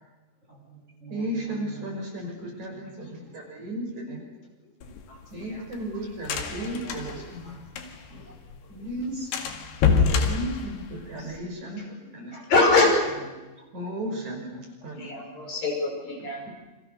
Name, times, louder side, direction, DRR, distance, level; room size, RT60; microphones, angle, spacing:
voice 1, 0.5-2.0 2.8-2.9 3.2-3.3 3.6-3.7 6.6-7.7 8.1-8.7 9.1-9.3 12.3-12.5 13.2-13.6 14.1-14.2 14.8-15.6 16.4-16.5, right 3 dB, 15° right, 0 dB, 6.2 m, -46 dB
voice 2, 1.1-4.2 5.3-7.6 8.7-9.3 10.0-11.8 12.1-12.3 13.7-15.1, right 1 dB, 40° right, 1 dB, 6.5 m, -34 dB
sound 1, 4.8-8.2 8.5-8.6 8.9-9.0 9.3-11.4, left 5 dB, 70° left, 4.1 m, -26 dB
voice 3, 5.1-5.6 7.8-7.9 11.2-11.3 12.5-12.9 15.0-16.4, left 3 dB, 50° left, 1 dB, 7.1 m, -24 dB
30.0 x 26.5 x 6.8 m, 1.1 s
omnidirectional pair, 5.1 m